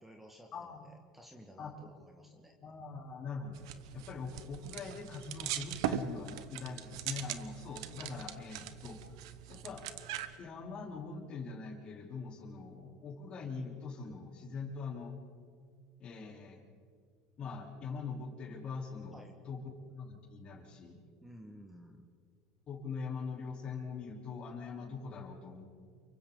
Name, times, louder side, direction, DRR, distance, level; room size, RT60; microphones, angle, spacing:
voice 1, 0.0-2.5 19.1-19.3 21.2-22.0, equal, 5° right, 3 dB, 1.7 m, -54 dB
voice 2, 0.5-0.9 1.6-1.7 2.6-3.6 3.9-9.2 9.5-9.9 10.4-15.2 16.0-16.6 17.4-19.6 19.9-21.0 22.7-25.6, left 4 dB, 35° left, 0 dB, 3.9 m, -43 dB
sound 1, 3.5-10.4, right 10 dB, 85° right, 1.2 m, -41 dB
29.0 x 24.0 x 4.0 m, 2.1 s
supercardioid pair, 130°, 3 cm